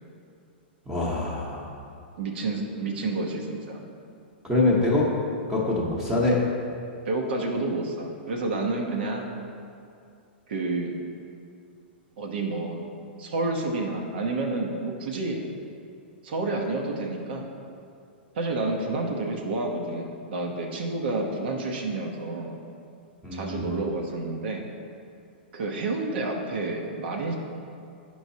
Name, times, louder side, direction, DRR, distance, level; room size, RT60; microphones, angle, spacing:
voice 1, 0.9-1.7 4.4-5.1 5.5-6.4 23.2-23.7, left 2 dB, 10° right, -5 dB, 1.0 m, -24 dB
voice 2, 2.2-3.8 7.0-9.3 10.5-11.0 12.2-12.8 13.2-15.4 16.2-17.5 18.3-22.5 23.3-24.7 25.5-27.3, right 2 dB, 65° right, 1 dB, 0.9 m, -29 dB
9.0 x 4.7 x 2.8 m, 2.5 s
hypercardioid pair, 135°, 6 cm